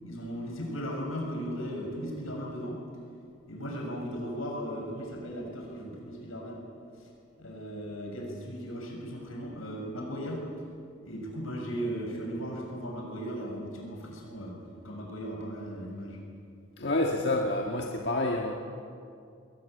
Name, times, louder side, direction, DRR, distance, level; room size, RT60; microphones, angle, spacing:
voice 1, 0.0-2.8 3.5-6.6 7.0-7.1 7.4-10.5 11.0-16.2, equal, 90° left, 0 dB, 6.7 m, -37 dB
voice 2, 16.8-18.5, left 2 dB, 55° left, 1 dB, 1.6 m, -28 dB
21.5 x 19.0 x 9.1 m, 2.4 s
head